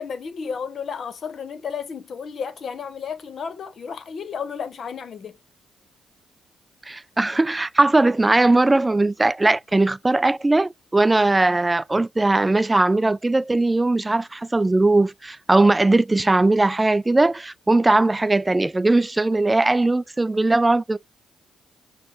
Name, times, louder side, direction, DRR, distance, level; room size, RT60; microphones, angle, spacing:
voice 1, 0.0-5.4, left 6 dB, 55° left, 0.9 m, -32 dB
voice 2, 6.9-21.0, right 2 dB, 20° right, 0.3 m, -19 dB
5.9 x 2.1 x 3.5 m
hypercardioid pair, 50°, 0 cm